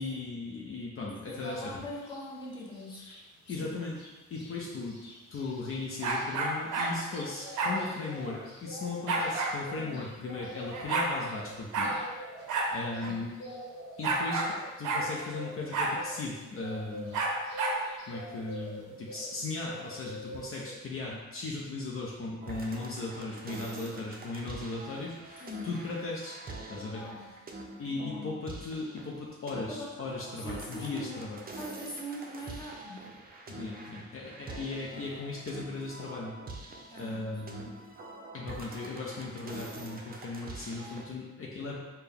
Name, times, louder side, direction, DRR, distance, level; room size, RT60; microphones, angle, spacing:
voice 1, 0.0-1.7 3.5-3.9 4.3-5.0 5.3-12.0 12.7-13.3 14.0-17.2 18.1-26.4 26.7-27.0 27.8-31.4 33.5-36.3 37.0-37.8 38.3-41.8, left 3 dB, 45° left, -3 dB, 0.7 m, -37 dB
voice 2, 1.1-3.1 3.6-3.7 9.8-10.0 25.4-25.7 26.9-27.3 27.9-28.3 29.7-30.0 30.4-31.3 31.6-33.1 36.9-37.4, left 1 dB, 15° left, -3 dB, 0.9 m, -42 dB
sound 1, 1.4-1.6 2.0-3.6 3.9-4.1 4.3-19.4 19.6-20.7, left 1 dB, 60° left, 1.1 m, -45 dB
sound 2, 6.0-6.9 7.6-7.8 9.1-9.5 10.4-10.5 10.7-11.1 11.7-11.9 12.5-12.7 13.0-13.1 14.0-14.5 14.8-15.0 15.7-15.9 17.1-17.8, right 3 dB, 85° right, 0.7 m, -29 dB
sound 3, 22.4-41.1, right 2 dB, 30° right, 0.5 m, -45 dB
4.1 x 2.2 x 3.5 m, 1.1 s
cardioid pair, 90°, 30 cm